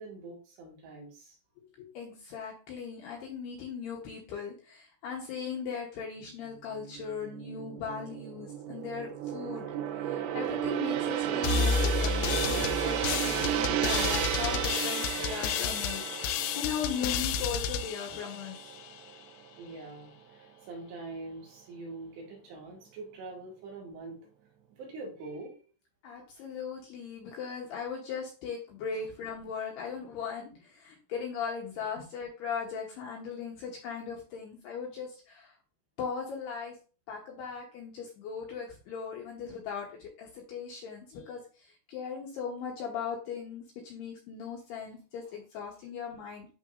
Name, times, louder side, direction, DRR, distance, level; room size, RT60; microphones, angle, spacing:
voice 1, 0.0-1.4 19.6-24.2 24.7-25.7 28.9-29.0 32.0-32.1 45.3-45.4, right 3 dB, 65° right, -2 dB, 3.6 m, -44 dB
voice 2, 1.6-9.7 10.0-18.6 26.0-35.5 36.0-36.7 37.1-46.5, left 6 dB, 75° left, -1 dB, 2.6 m, -38 dB
Gong, 6.8-19.3 19.6-19.9, right 10 dB, 85° right, 3.3 m, -33 dB
sound 1, 11.4-18.9, left 6 dB, 90° left, 2.5 m, -31 dB
11.5 x 3.9 x 2.6 m, 0.36 s
omnidirectional pair, 5.7 m